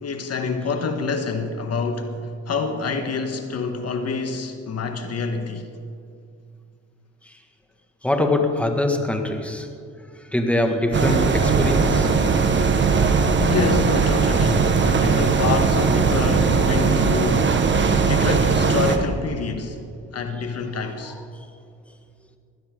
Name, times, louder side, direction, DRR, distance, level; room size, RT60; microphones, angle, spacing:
voice 1, 0.0-5.7 13.4-17.7 18.0-19.8 20.1-21.1, left 4 dB, 55° left, 1.5 m, -27 dB
voice 2, 8.0-9.7 10.3-12.3 21.3-21.4, left 2 dB, 5° left, 1.9 m, -23 dB
sound 1, 10.9-19.0, right 5 dB, 40° right, 1.5 m, -19 dB
21.0 x 15.5 x 3.8 m
cardioid pair, 90°, 30 cm